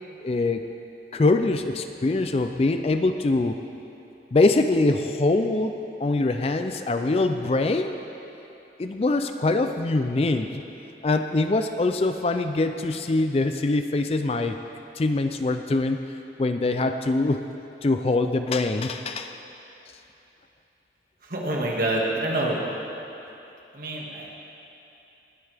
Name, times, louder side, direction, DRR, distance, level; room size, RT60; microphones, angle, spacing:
voice 1, 0.2-0.7 1.1-3.6 4.3-8.0 8.8-10.6 11.0-14.6 15.0-16.0 16.4-17.4 17.8-19.4, left 2 dB, 35° left, 7 dB, 0.4 m, -23 dB
voice 2, 21.3-22.6 23.8-24.3, right 1 dB, 50° right, -3 dB, 1.9 m, -26 dB
20.0 x 10.0 x 3.5 m, 2.9 s
head